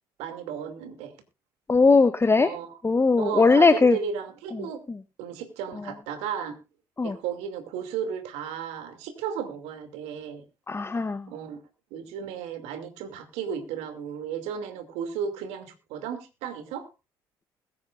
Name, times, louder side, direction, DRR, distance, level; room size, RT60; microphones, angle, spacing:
voice 1, 0.2-1.1 2.4-2.8 3.2-4.8 5.2-6.6 7.0-10.4 11.3-11.6 11.9-16.9, right 8 dB, 75° right, 8 dB, 2.6 m, -34 dB
voice 2, 1.7-2.5 2.8-4.0 4.9-5.0 7.0-7.2 10.7-11.3, left 4 dB, 25° left, 11 dB, 0.9 m, -19 dB
21.5 x 9.6 x 2.5 m, 0.28 s
hypercardioid pair, 50°, 11 cm